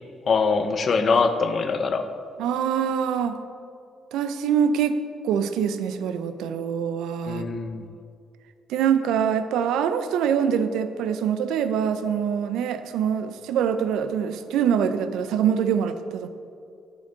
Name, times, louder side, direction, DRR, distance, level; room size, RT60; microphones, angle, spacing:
voice 1, 0.3-2.1 7.3-7.9, left 4 dB, 50° left, 9 dB, 0.5 m, -23 dB
voice 2, 2.4-3.4 4.1-5.0 5.2-7.5 8.7-16.3, right 8 dB, 90° right, 10 dB, 0.4 m, -24 dB
6.9 x 6.5 x 3.9 m, 2.4 s
cardioid pair, 90°, 0 cm